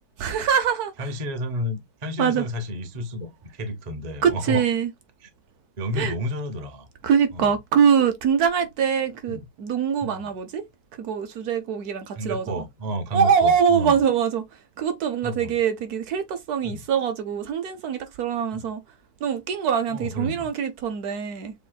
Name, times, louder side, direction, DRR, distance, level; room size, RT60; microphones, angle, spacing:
voice 1, 0.2-0.9 2.2-2.5 4.2-4.9 6.0-6.1 7.0-10.6 11.0-12.6 13.1-14.4 14.8-18.8 19.2-21.5, right 7 dB, 65° right, 1.1 m, -23 dB
voice 2, 1.0-4.6 5.8-6.9 7.3-7.5 9.3-9.4 10.0-10.3 12.2-14.0 15.2-15.5 16.6-16.8 18.5-18.7 19.9-20.5, equal, 40° right, 0.6 m, -31 dB
6.9 x 3.0 x 2.3 m
omnidirectional pair, 2.0 m